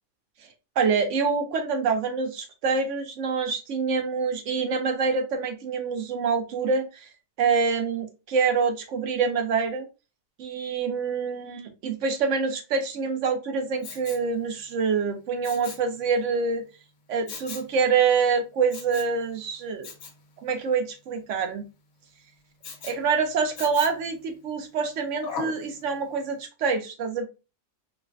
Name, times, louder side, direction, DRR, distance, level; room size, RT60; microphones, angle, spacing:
voice 1, 0.8-7.1 7.4-9.9 10.4-16.7 17.1-19.9 20.4-21.6 22.8-27.3, right 5 dB, 65° right, 5 dB, 1.0 m, -26 dB
Respiratory sounds, 13.8-14.3 15.4-15.9 17.3-17.7 18.7-19.2 19.8-20.2 22.6-23.0 23.6-24.1 25.2-25.6 26.1-26.2, left 5 dB, 80° left, 1.2 m, -38 dB
4.7 x 2.1 x 2.4 m, 0.29 s
omnidirectional pair, 1.5 m